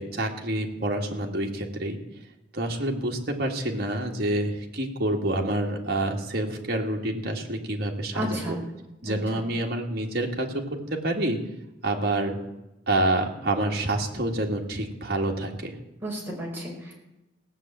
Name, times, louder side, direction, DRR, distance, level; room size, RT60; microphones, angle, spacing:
voice 1, 0.0-2.0 2.5-8.6 9.0-10.5 11.0-11.4 11.8-12.4 12.9-15.8, right 1 dB, 55° right, 0 dB, 2.1 m, -27 dB
voice 2, 8.1-8.6 9.0-9.4 16.0-16.9, equal, 10° right, -4 dB, 5.0 m, -33 dB
16.5 x 7.3 x 8.9 m, 0.94 s
head